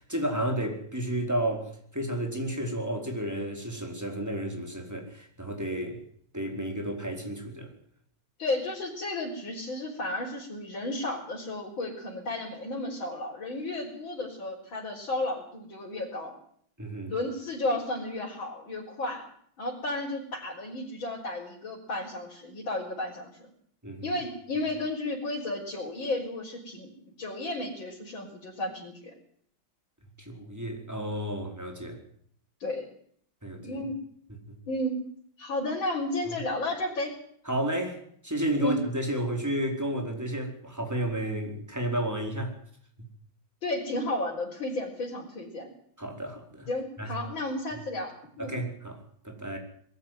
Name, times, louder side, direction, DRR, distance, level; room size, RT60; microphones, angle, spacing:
voice 1, 0.0-6.0 6.3-7.7 16.8-17.1 23.8-24.1 30.2-32.0 33.4-33.8 37.5-42.5 46.0-46.7 47.0-47.1 48.4-49.0 49.2-49.6, right 1 dB, 5° right, 4.6 m, -32 dB
voice 2, 8.4-16.3 17.1-19.2 19.6-23.5 24.0-29.1 32.6-32.9 33.6-34.0 34.7-35.0 35.4-37.1 38.6-38.8 43.6-45.7 46.7-48.5, left 2 dB, 65° left, 5.3 m, -33 dB
22.5 x 13.5 x 9.5 m
omnidirectional pair, 2.3 m